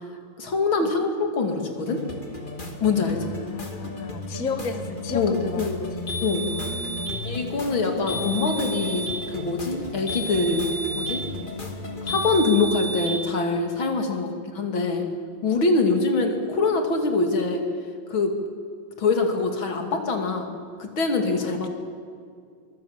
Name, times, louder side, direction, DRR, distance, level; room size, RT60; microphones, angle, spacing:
voice 1, 0.4-2.0 2.8-3.2 5.1-5.9 6.2-6.7 7.2-11.2 12.0-15.1 15.4-17.6 18.1-18.3 19.0-21.7, left 3 dB, 85° left, 4 dB, 3.4 m, -24 dB
sound 1, 1.8-12.6, left 2 dB, 25° left, 2.5 m, -35 dB
voice 2, 3.0-6.1 6.4-7.3 14.1-14.3 16.1-16.5 21.4-21.7, left 4 dB, 45° left, 7 dB, 2.0 m, -36 dB
sound 2, 6.1-7.2 8.1-9.2 10.1-11.2 12.1-13.2, right 1 dB, 60° left, 5.9 m, -31 dB
24.0 x 23.5 x 7.4 m, 2.2 s
omnidirectional pair, 2.2 m